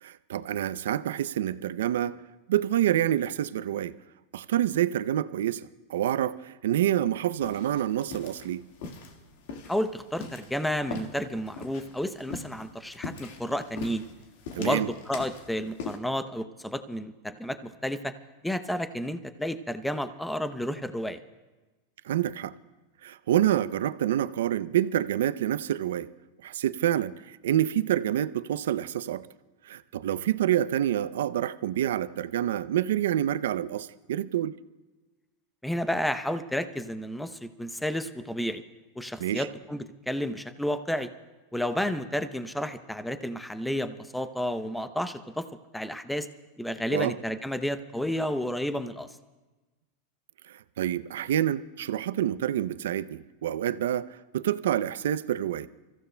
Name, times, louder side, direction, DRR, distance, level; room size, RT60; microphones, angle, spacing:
voice 1, 0.0-2.1 2.5-3.9 4.3-8.6 14.5-14.9 22.0-22.5 23.0-26.1 26.4-29.3 29.7-34.6 39.2-39.5 46.9-47.1 50.5-55.7, right 11 dB, 80° right, 15 dB, 0.5 m, -27 dB
sound 1, 7.4-16.0, left 4 dB, 70° left, 1.7 m, -42 dB
voice 2, 9.7-14.1 14.6-18.1 18.4-21.2 35.6-38.6 39.0-41.1 41.5-45.4 45.7-46.3 46.6-49.1, equal, 5° left, 10 dB, 0.7 m, -31 dB
29.5 x 15.0 x 2.2 m, 1.2 s
hypercardioid pair, 120°, 0 cm